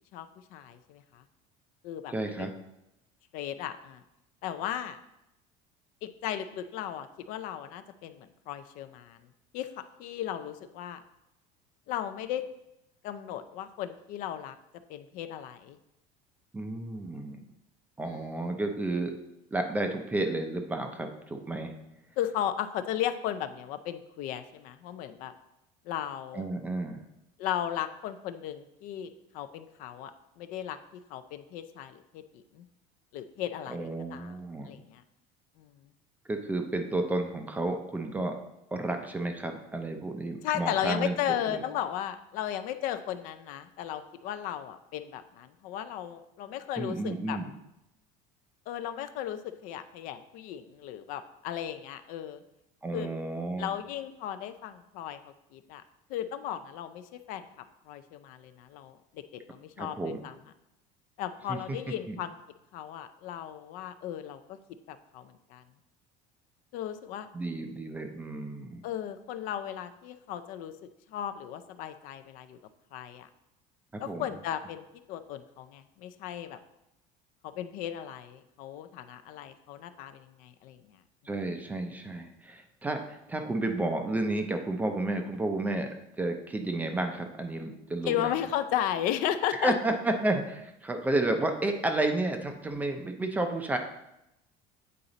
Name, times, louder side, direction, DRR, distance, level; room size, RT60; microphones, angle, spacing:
voice 1, 0.1-1.2 1.8-2.1 2.4-2.5 3.3-4.0 4.4-5.0 6.0-9.2 9.5-11.0 11.9-12.4 13.0-14.6 14.9-15.8 18.1-18.3 22.2-25.3 25.9-26.4 27.4-30.1 30.4-30.8 31.1-32.6 33.1-34.3 34.7-35.0 35.6-35.7 40.4-47.4 48.7-52.4 52.9-53.1 53.6-55.8 56.1-57.5 57.9-60.3 61.2-62.3 62.7-64.6 64.9-65.6 66.7-67.3 68.8-70.7 71.1-72.6 72.9-73.3 74.0-76.6 77.4-81.0 88.1-89.7, left 10 dB, 55° left, 11 dB, 0.4 m, -35 dB
voice 2, 2.1-2.5 16.5-17.4 18.0-19.1 19.5-21.7 26.3-27.0 33.7-34.7 36.3-38.4 38.7-41.2 41.5-41.6 46.8-47.5 52.8-53.7 59.8-60.2 61.5-61.8 62.1-62.2 67.3-68.8 73.9-74.3 81.3-85.9 86.2-88.3 89.5-93.8, right 2 dB, 10° right, 5 dB, 0.4 m, -31 dB
8.6 x 4.0 x 3.9 m, 0.86 s
cardioid pair, 170°, 17 cm